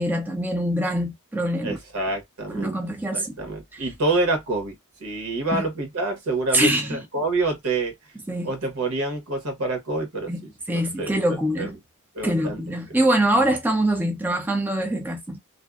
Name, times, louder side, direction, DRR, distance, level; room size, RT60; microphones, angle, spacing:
voice 1, 0.0-1.8 2.5-3.4 3.7-3.8 5.5-5.6 6.5-7.0 8.3-8.5 10.3-10.4 10.7-11.8 12.2-15.4, right 1 dB, 10° right, 0.4 m, -24 dB
voice 2, 1.6-2.8 3.1-7.9 8.4-11.7 12.1-12.6 12.9-13.0, right 2 dB, 75° right, 1.1 m, -27 dB
2.6 x 2.1 x 2.3 m
head